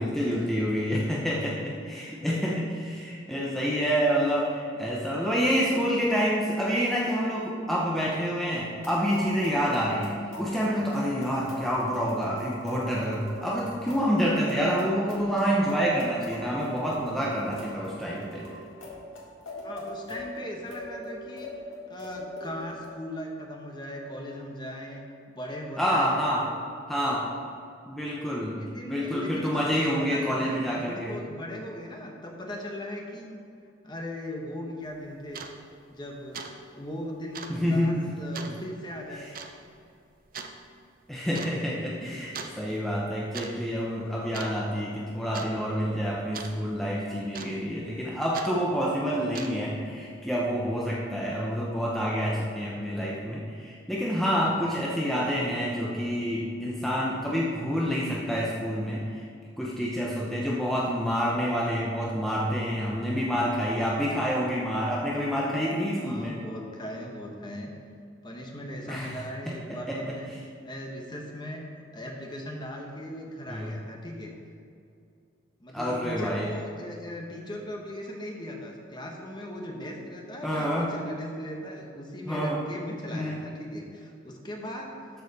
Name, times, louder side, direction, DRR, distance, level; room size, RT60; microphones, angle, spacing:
voice 1, 0.0-18.5 25.8-26.5 26.9-27.2 27.9-28.6 28.9-31.1 37.5-38.1 38.5-38.6 41.1-59.0 59.6-66.4 68.9-70.1 73.5-73.7 75.7-76.5 80.4-80.9 82.3-82.6 83.1-83.4, equal, ahead, -5 dB, 0.8 m, -28 dB
sound 1, 8.5-22.9, left 1 dB, 80° left, 1.9 m, -42 dB
voice 2, 19.6-21.5 21.9-25.0 25.3-26.2 28.6-33.4 33.8-35.4 35.9-36.4 36.7-39.3 65.8-67.7 68.2-70.3 70.6-74.3 75.6-84.9, left 1 dB, 20° left, 0 dB, 1.0 m, -38 dB
sound 2, 34.9-35.0 35.3-35.6 35.9-36.1 36.3-36.6 36.8-36.9 37.3-37.6 38.3-38.6 39.3-39.6 40.3-40.5 41.3-41.6 42.3-42.6 43.1-43.5 43.8-44.0 44.3-44.8 45.3-45.5 46.3-46.6 47.3-47.8 48.3-48.5 49.2-49.7, right 5 dB, 45° right, 0.6 m, -39 dB
13.0 x 4.8 x 4.1 m, 2.4 s
head